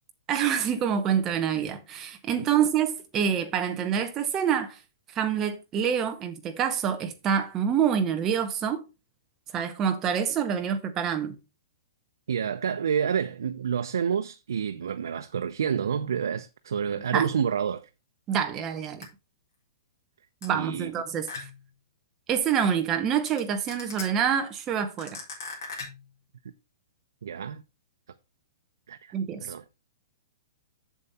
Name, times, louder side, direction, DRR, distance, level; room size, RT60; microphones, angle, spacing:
voice 1, 0.3-4.8 5.1-8.8 9.5-11.4 17.1-17.3 18.3-19.1 20.4-21.5 22.3-25.2 29.1-29.5, right 8 dB, 15° right, 0.8 m, -26 dB
voice 2, 12.3-17.9 20.5-20.9 27.2-27.6 28.9-29.1 29.4-29.6, right 7 dB, 85° right, 0.6 m, -29 dB
sound 1, 19.0-19.1 20.4-20.5 21.3-21.7 23.3-23.4 23.7-24.0 25.0-26.1, left 4 dB, 55° left, 4.2 m, -38 dB
7.3 x 6.9 x 4.2 m
hypercardioid pair, 180°, 2 cm